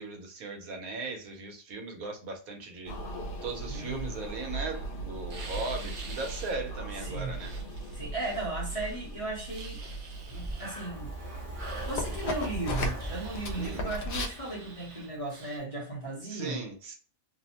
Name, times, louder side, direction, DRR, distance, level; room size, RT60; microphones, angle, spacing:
voice 1, 0.0-3.0 3.4-7.5 13.6-13.9 16.2-17.0, right 3 dB, 80° right, 1.2 m, -38 dB
sound 1, 2.9-14.3, equal, 75° left, 0.5 m, -38 dB
voice 2, 3.7-4.2 7.0-7.3 7.9-9.8 10.3-11.1 11.6-16.6, right 2 dB, 35° left, 0.7 m, -36 dB
sound 2, 5.3-6.5 7.0-9.1 9.4-10.9 11.6-12.6 13.0-13.8 14.1-15.6, right 3 dB, 60° right, 0.9 m, -48 dB
Breathing, 10.2-15.2, equal, 40° right, 0.5 m, -41 dB
2.9 x 2.0 x 2.7 m
omnidirectional pair, 1.5 m